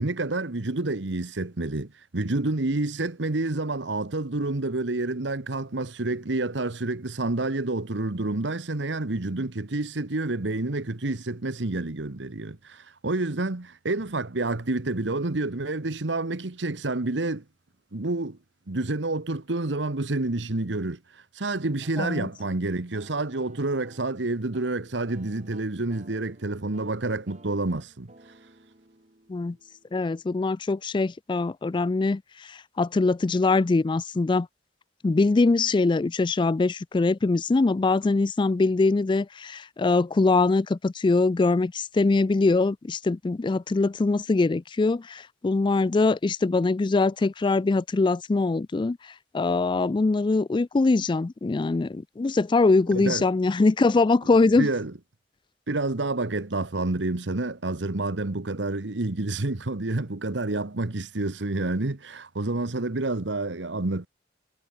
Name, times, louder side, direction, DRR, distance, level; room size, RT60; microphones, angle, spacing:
voice 1, 0.0-17.4 17.9-18.4 18.7-21.0 21.3-28.1 52.9-53.2 54.6-54.9 55.7-64.1, right 2 dB, 90° right, 1.3 m, -28 dB
sound 1, 21.8-30.4, right 2 dB, 40° right, 4.7 m, -55 dB
voice 2, 22.0-22.3 29.3-29.6 29.9-34.5 35.0-49.0 49.3-54.7, left 3 dB, 25° left, 0.4 m, -23 dB
head